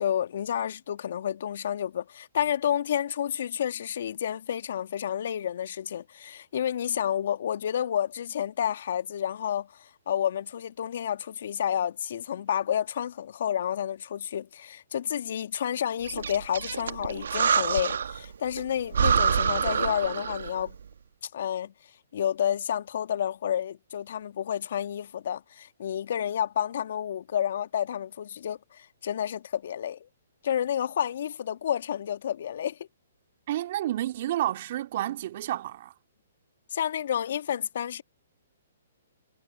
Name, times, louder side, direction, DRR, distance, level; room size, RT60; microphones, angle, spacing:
voice 1, 0.0-20.7 21.3-21.7 22.1-30.1 30.4-32.8 36.7-38.0, left 9 dB, 60° left, 1.9 m, -30 dB
Breathing, 16.1-18.2 18.6-18.7 18.9-20.6, right 6 dB, 70° right, 1.7 m, -26 dB
voice 2, 33.5-35.9, right 13 dB, 50° right, 2.7 m, -30 dB
hypercardioid pair, 130°, 0 cm